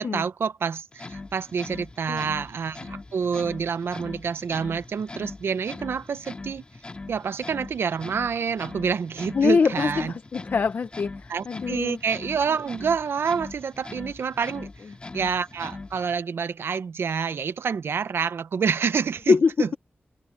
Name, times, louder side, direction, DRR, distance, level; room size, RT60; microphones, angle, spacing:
voice 1, 0.0-6.6 7.1-10.1 11.3-14.7 15.1-19.8, right 6 dB, 70° right, 0.7 m, -28 dB
sound 1, 0.9-16.1, left 3 dB, 25° left, 2.5 m, -41 dB
voice 2, 9.3-12.0 19.3-19.5, left 5 dB, 50° left, 0.7 m, -23 dB
open air
wide cardioid pair, 145°, 4 cm